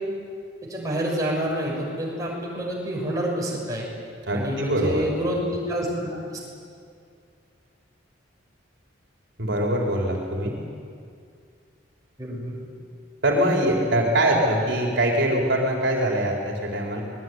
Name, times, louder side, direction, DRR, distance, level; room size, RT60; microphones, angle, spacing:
voice 1, 0.7-3.9 4.3-6.4 12.2-12.7, equal, 20° right, -3 dB, 6.5 m, -28 dB
voice 2, 4.3-5.0 9.4-10.5 13.2-17.0, right 1 dB, 65° right, -1 dB, 4.5 m, -23 dB
25.0 x 21.0 x 9.7 m, 2.3 s
head